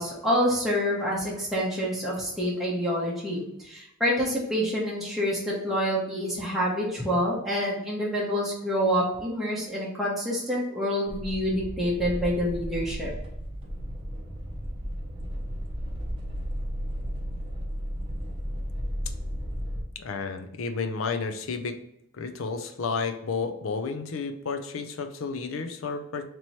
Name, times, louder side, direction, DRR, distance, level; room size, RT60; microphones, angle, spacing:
voice 1, 0.0-13.1, equal, ahead, -6 dB, 0.9 m, -27 dB
sound 1, 11.1-19.8, equal, 25° right, 0.7 m, -34 dB
voice 2, 20.0-21.8 22.1-26.3, left 4 dB, 70° left, 7 dB, 0.5 m, -31 dB
3.0 x 3.0 x 4.1 m, 0.80 s
head